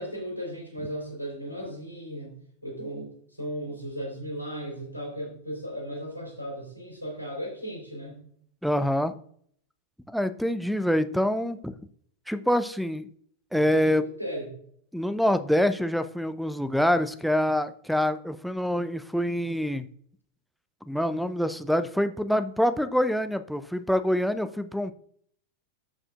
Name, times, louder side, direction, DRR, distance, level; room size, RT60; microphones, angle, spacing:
voice 1, 0.0-2.3 2.6-8.2 13.5-14.5, equal, 85° right, -1 dB, 3.7 m, -36 dB
voice 2, 8.6-9.2 10.1-11.8 12.3-13.1 13.5-14.1 14.9-19.9 20.9-24.9, equal, ahead, 10 dB, 0.5 m, -25 dB
14.5 x 5.0 x 2.4 m, 0.62 s
figure-of-eight pair, 90°, 0 cm